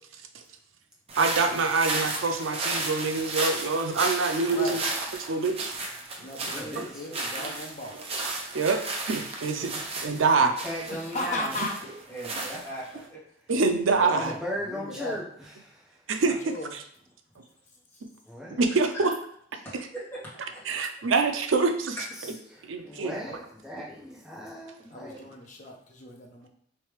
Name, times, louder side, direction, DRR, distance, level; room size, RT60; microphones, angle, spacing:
sound 1, 1.1-13.0, right 2 dB, 30° right, 0.6 m, -34 dB
voice 1, 1.2-4.8 5.3-5.7 6.8-6.9 8.2-10.5 13.5-14.3 16.1-16.5 18.5-19.1 20.7-22.0 22.7-23.4, right 4 dB, 85° right, 6 dB, 0.5 m, -25 dB
voice 2, 4.5-4.8 6.2-8.0 10.9-11.8 12.3-12.4 13.9-15.2 16.2-16.7 24.9-26.5, left 1 dB, 40° left, 2 dB, 0.6 m, -36 dB
voice 3, 6.5-7.0 10.4-11.6 14.1-15.2 15.6-15.8 18.3-18.7 22.5-25.3, equal, 5° right, -6 dB, 1.0 m, -37 dB
voice 4, 11.8-13.2 19.6-20.2 20.5-20.6 22.0-22.1 22.8-22.9 23.7-23.9, right 1 dB, 10° left, -9 dB, 1.5 m, -40 dB
3.3 x 3.1 x 3.1 m, 0.68 s
head